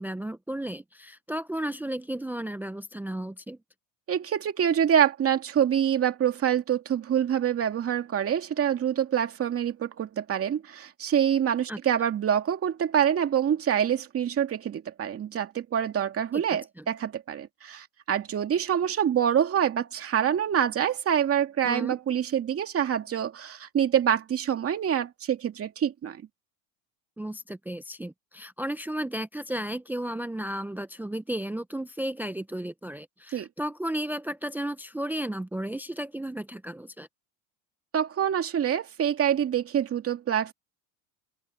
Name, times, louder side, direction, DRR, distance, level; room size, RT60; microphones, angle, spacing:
voice 1, 0.0-3.6 11.7-11.8 16.3-16.4 16.8-16.9 21.6-22.0 27.2-37.1, right 1 dB, 5° right, 0.6 m, -34 dB
voice 2, 4.1-26.2 33.3-33.5 37.9-40.5, right 9 dB, 35° right, 2.4 m, -26 dB
supercardioid pair, 115°, 41 cm